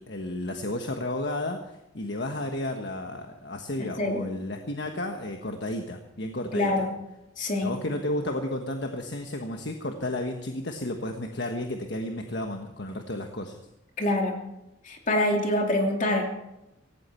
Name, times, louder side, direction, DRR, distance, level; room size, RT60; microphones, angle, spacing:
voice 1, 0.0-6.9 7.6-13.5, left 1 dB, 65° left, 4 dB, 1.4 m, -32 dB
voice 2, 3.8-4.3 6.5-6.9 7.4-7.7 14.0-14.4 14.8-16.3, left 1 dB, 45° left, 1 dB, 2.7 m, -25 dB
17.0 x 17.0 x 4.5 m, 0.91 s
head